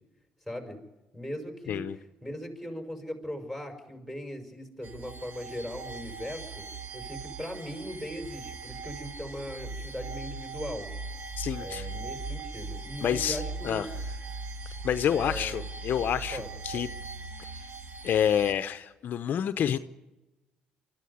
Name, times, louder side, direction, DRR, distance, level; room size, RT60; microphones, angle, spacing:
voice 1, 0.5-0.8 1.1-6.6 6.9-10.9 11.6-13.9 15.1-15.7 16.3-16.9, equal, 5° right, 4 dB, 5.4 m, -39 dB
sound 1, 4.8-18.5, right 3 dB, 55° right, 1.8 m, -39 dB
voice 2, 11.4-11.9 13.0-13.9 14.8-16.9 17.4-17.5 18.0-19.8, left 9 dB, 60° left, 11 dB, 0.7 m, -28 dB
24.5 x 13.5 x 9.6 m, 1.1 s
supercardioid pair, 75°, 4 cm